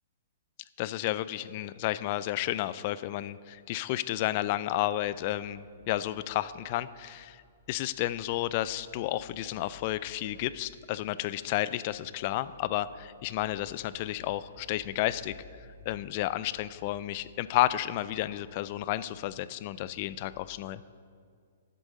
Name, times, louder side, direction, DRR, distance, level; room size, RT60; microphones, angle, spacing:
voice 1, 0.8-7.4 7.7-15.3 15.9-20.8, left 14 dB, 45° left, 16 dB, 0.3 m, -31 dB
sound 1, 6.2-20.4, left 4 dB, 5° left, 1.7 m, -58 dB
13.0 x 7.7 x 3.7 m, 2.1 s
hypercardioid pair, 135°, 0 cm